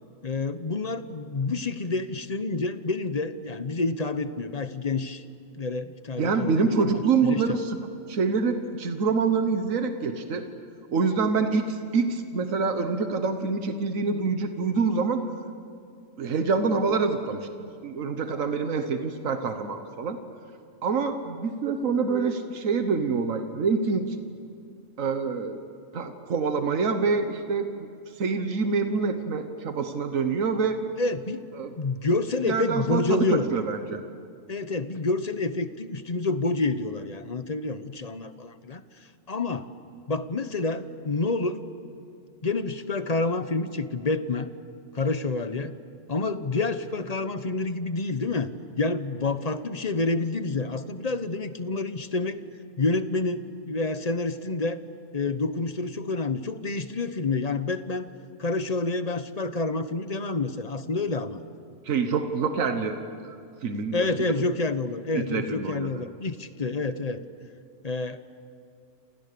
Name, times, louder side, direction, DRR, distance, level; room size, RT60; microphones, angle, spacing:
voice 1, 0.2-5.2 5.6-7.6 31.0-31.5 31.8-33.5 34.5-38.8 39.3-39.7 40.1-41.7 42.4-44.5 44.9-45.7 46.1-48.5 48.8-52.4 52.8-54.8 55.1-58.1 58.4-61.4 63.9-67.2 67.8-68.2, left 3 dB, 35° left, 11 dB, 1.0 m, -28 dB
voice 2, 6.2-7.8 8.1-10.5 10.9-15.2 16.2-17.5 17.8-20.2 20.8-24.2 25.0-25.6 25.9-27.9 28.2-30.8 31.6-31.7 32.5-34.0 61.8-63.0 63.2-63.4 63.6-64.1 64.3-64.4 65.1-66.0, right 4 dB, 80° right, 7 dB, 1.6 m, -26 dB
28.5 x 28.0 x 6.8 m, 2.4 s
omnidirectional pair, 1.4 m